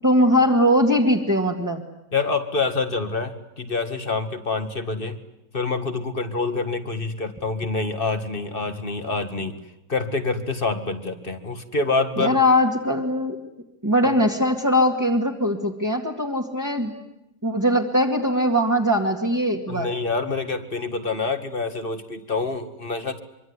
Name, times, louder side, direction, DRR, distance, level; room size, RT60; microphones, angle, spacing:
voice 1, 0.0-1.8 12.2-13.4 13.8-16.9 17.4-19.9, equal, 10° right, -1 dB, 2.1 m, -20 dB
voice 2, 2.1-5.2 5.5-9.6 9.9-12.4 14.0-14.1 19.7-23.2, left 3 dB, 40° left, 9 dB, 2.0 m, -26 dB
25.0 x 24.5 x 9.8 m, 0.91 s
omnidirectional pair, 1.5 m